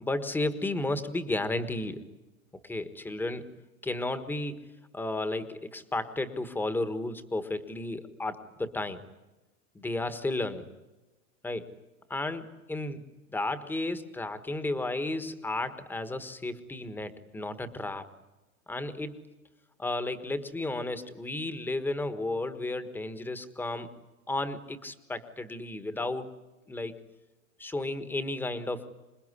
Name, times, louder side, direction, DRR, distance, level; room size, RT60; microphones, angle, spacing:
voice 1, 0.0-2.0 2.6-3.5 3.8-4.7 4.9-9.0 9.7-10.7 11.4-11.7 12.1-18.1 18.7-19.2 19.8-23.9 24.3-26.3 26.7-26.9 27.6-28.9, left 2 dB, 5° left, 11 dB, 1.3 m, -33 dB
27.0 x 20.5 x 9.7 m, 1.1 s
supercardioid pair, 150°, 41 cm